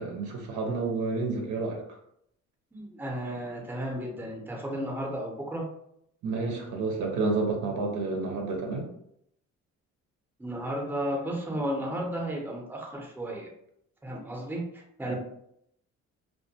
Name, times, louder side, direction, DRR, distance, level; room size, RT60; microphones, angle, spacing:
voice 1, 0.0-1.8 6.2-8.9 15.1-15.2, right 3 dB, 75° right, 1 dB, 0.7 m, -30 dB
voice 2, 2.7-5.7 10.4-13.5 14.0-15.2, right 1 dB, 5° right, -1 dB, 0.6 m, -33 dB
2.2 x 2.2 x 2.7 m, 0.73 s
cardioid pair, 90°, 30 cm